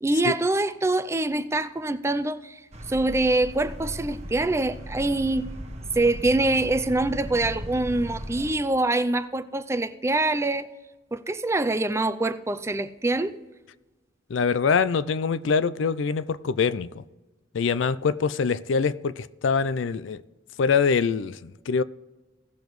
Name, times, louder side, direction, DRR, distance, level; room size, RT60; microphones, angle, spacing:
voice 1, 0.0-2.6 2.9-5.5 5.9-10.7 11.1-13.4, right 2 dB, 15° right, 0.4 m, -25 dB
sound 1, 2.7-8.5, equal, 35° right, 1.1 m, -37 dB
voice 2, 14.3-17.0 17.5-20.2 20.6-21.8, left 5 dB, 75° left, 0.4 m, -24 dB
17.0 x 7.0 x 3.1 m
head